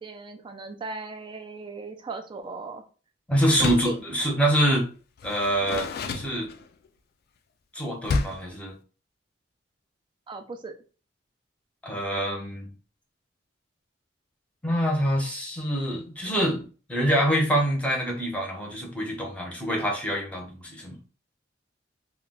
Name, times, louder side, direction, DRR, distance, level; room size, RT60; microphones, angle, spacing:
voice 1, 0.0-2.8 3.6-4.0 10.3-10.7, right 3 dB, 25° right, 7 dB, 0.3 m, -37 dB
voice 2, 3.3-4.9 5.2-6.5 7.7-8.7 11.8-12.7 14.6-21.0, equal, 5° left, -1 dB, 0.7 m, -25 dB
Door, 3.5-4.0 5.2-6.9 8.0-8.5, left 3 dB, 55° left, 0.3 m, -30 dB
2.3 x 2.2 x 3.6 m, 0.36 s
head